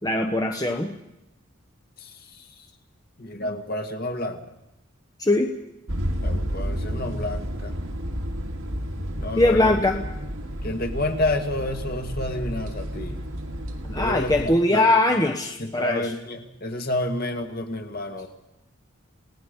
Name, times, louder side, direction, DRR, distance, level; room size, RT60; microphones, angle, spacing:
voice 1, 0.0-0.9 5.2-5.5 9.4-10.0 13.8-16.1, left 2 dB, 20° left, 3 dB, 1.1 m, -21 dB
voice 2, 2.0-2.5 3.2-4.4 6.2-7.7 9.2-9.8 10.6-13.2 13.9-14.9 15.6-18.3, left 1 dB, 45° left, 5 dB, 2.1 m, -29 dB
sound 1, 5.9-14.6, equal, 80° right, 2.3 m, -31 dB
29.5 x 18.0 x 5.3 m, 0.88 s
head